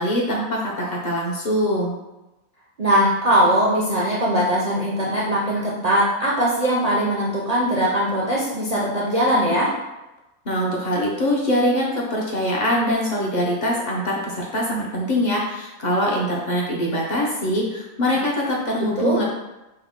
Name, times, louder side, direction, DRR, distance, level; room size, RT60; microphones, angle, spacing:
voice 1, 0.0-2.0 10.5-19.2, equal, 65° left, -3 dB, 0.4 m, -23 dB
voice 2, 2.8-9.7 19.0-19.2, equal, 60° right, -6 dB, 0.4 m, -20 dB
5.5 x 2.1 x 3.6 m, 1.0 s
omnidirectional pair, 1.6 m